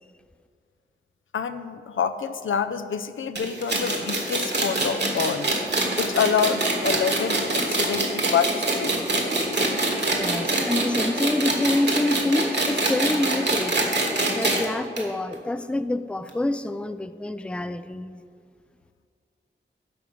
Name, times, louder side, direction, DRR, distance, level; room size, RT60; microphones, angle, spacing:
voice 1, 1.3-5.5 6.0-9.0, left 6 dB, 80° left, 10 dB, 0.5 m, -27 dB
sound 1, 3.4-14.6 15.0-15.1 15.3-15.4 16.3-16.4, right 2 dB, 60° right, 1.7 m, -24 dB
voice 2, 10.1-13.9 14.3-18.2, left 1 dB, 5° left, 12 dB, 0.4 m, -27 dB
8.6 x 5.0 x 7.0 m, 2.1 s
cardioid pair, 50°, 20 cm